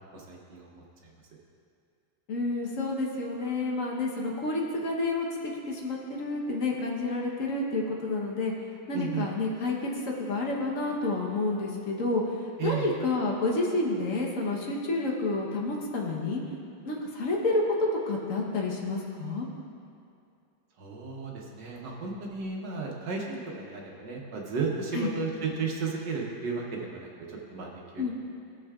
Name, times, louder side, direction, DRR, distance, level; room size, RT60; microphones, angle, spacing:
voice 1, 0.1-1.1 8.9-9.3 12.6-12.9 20.8-28.1, right 5 dB, 65° right, -2 dB, 1.6 m, -34 dB
voice 2, 2.3-8.5 8.9-12.2 12.6-16.4 16.8-19.5 24.9-25.1 28.0-28.1, left 2 dB, 50° left, -1 dB, 1.2 m, -29 dB
15.5 x 6.5 x 2.4 m, 2.5 s
omnidirectional pair, 2.1 m